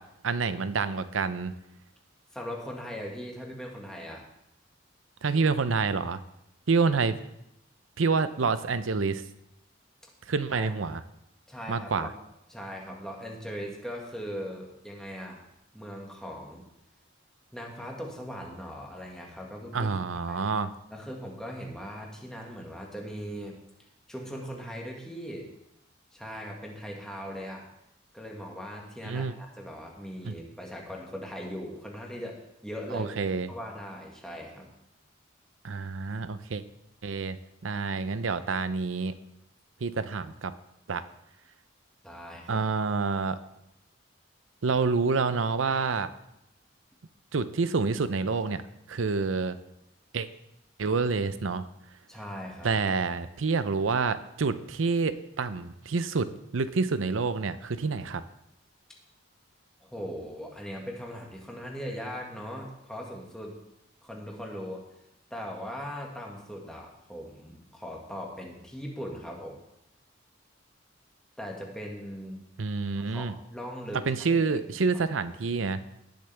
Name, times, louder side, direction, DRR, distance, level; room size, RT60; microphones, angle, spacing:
voice 1, 0.2-1.5 5.2-6.2 6.7-7.2 8.0-9.2 10.3-11.0 11.7-12.1 19.7-20.7 29.0-29.3 30.2-30.3 32.9-33.5 35.6-36.6 37.0-37.4 37.6-39.1 39.8-40.5 40.9-41.0 42.5-43.4 44.6-46.1 47.3-48.6 48.9-49.6 50.1-50.3 50.8-51.7 52.6-58.2 72.6-73.3 74.1-75.8, right 4 dB, 90° right, 13 dB, 0.6 m, -28 dB
voice 2, 2.3-4.3 5.3-5.4 10.0-10.1 10.5-10.8 11.5-12.2 12.5-15.4 15.7-16.6 17.5-19.9 20.3-20.5 20.9-23.6 24.1-25.5 26.1-27.7 28.1-33.1 33.5-34.7 42.0-42.5 52.1-52.7 59.8-63.6 64.0-64.8 65.3-69.6 71.4-72.4 72.9-74.5, equal, 5° left, -1 dB, 1.8 m, -39 dB
18.5 x 6.7 x 3.4 m, 0.82 s
head